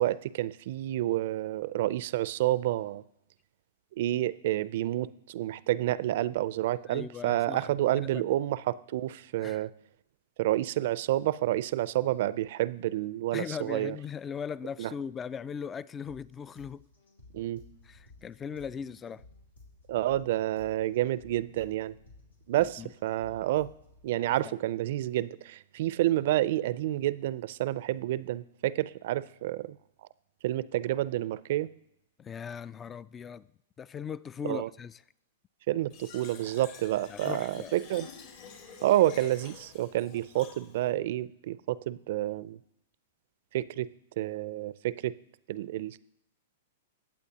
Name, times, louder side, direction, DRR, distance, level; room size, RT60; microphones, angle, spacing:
voice 1, 0.0-3.0 4.0-9.7 10.4-14.0 14.8-14.9 17.3-17.6 19.9-21.9 22.5-23.7 24.0-29.8 30.4-31.7 34.4-34.7 35.7-38.1 38.8-42.6 43.5-43.9 44.2-45.2 45.5-46.0, right 14 dB, 60° right, 0.4 m, -29 dB
voice 2, 6.8-8.2 9.4-9.6 13.3-16.8 17.8-19.2 22.8-22.9 24.3-24.5 32.2-33.5 33.8-35.0 37.1-37.7, left 7 dB, 20° left, 0.3 m, -39 dB
sound 1, 16.1-24.1, left 2 dB, 90° left, 2.6 m, -56 dB
Fill (with liquid), 35.9-40.9, left 7 dB, 55° left, 2.1 m, -48 dB
20.5 x 8.4 x 2.9 m
hypercardioid pair, 115°, 0 cm